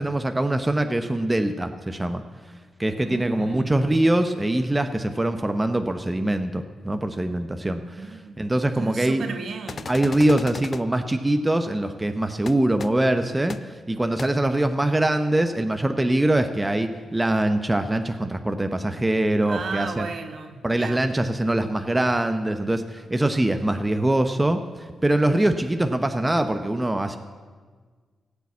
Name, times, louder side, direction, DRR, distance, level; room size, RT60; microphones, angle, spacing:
voice 1, 0.0-2.2 2.8-9.2 9.9-20.1 20.6-27.2, right 1 dB, 15° right, 7 dB, 0.8 m, -23 dB
voice 2, 3.0-3.9 7.6-8.4 8.7-9.9 19.4-21.0, right 4 dB, 65° right, 6 dB, 1.4 m, -34 dB
sound 1, 9.7-10.8 12.5-12.6 12.8-12.9 13.5-13.6 14.2-14.3, left 5 dB, 45° left, 0.4 m, -35 dB
16.0 x 6.9 x 8.4 m, 1.5 s
cardioid pair, 80°, 0 cm